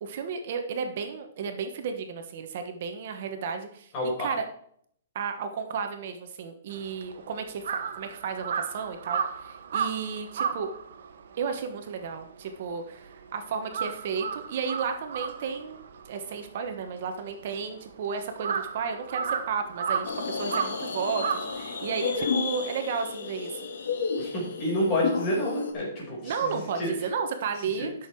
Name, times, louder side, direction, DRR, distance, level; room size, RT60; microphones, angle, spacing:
voice 1, 0.0-3.9 4.2-4.5 5.1-10.7 11.4-15.8 16.0-23.6 26.2-27.9, right 6 dB, 50° right, 6 dB, 1.2 m, -33 dB
voice 2, 3.9-4.3 24.2-26.9 27.8-27.9, left 1 dB, 25° left, -3 dB, 5.1 m, -29 dB
Crow, 6.7-13.2 13.5-22.2, right 6 dB, 70° right, 1.3 m, -34 dB
ovary whales on lcd, 20.0-25.7, left 5 dB, 80° left, 1.8 m, -32 dB
12.0 x 6.5 x 4.7 m, 0.66 s
hypercardioid pair, 160°, 0 cm